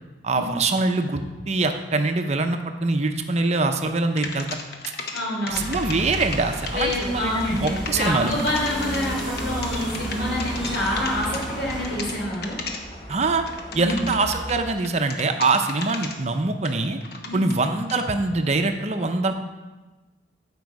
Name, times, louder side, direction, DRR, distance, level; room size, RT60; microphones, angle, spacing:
voice 1, 0.2-4.6 5.5-8.3 13.1-13.4 13.7-17.0 17.3-19.3, right 3 dB, 40° right, 6 dB, 0.6 m, -24 dB
sound 1, 4.2-5.2 5.5-14.6 14.8-16.2 16.6-18.1, left 4 dB, 60° left, 1.0 m, -35 dB
voice 2, 5.1-5.7 6.7-12.6 13.7-14.1 17.2-17.4, left 1 dB, 75° left, -3 dB, 3.3 m, -27 dB
sound 2, 5.5-12.1, equal, ahead, 3.5 m, -33 dB
sound 3, 7.2-14.7, right 1 dB, 30° left, 1.8 m, -38 dB
12.0 x 5.3 x 4.8 m, 1.2 s
head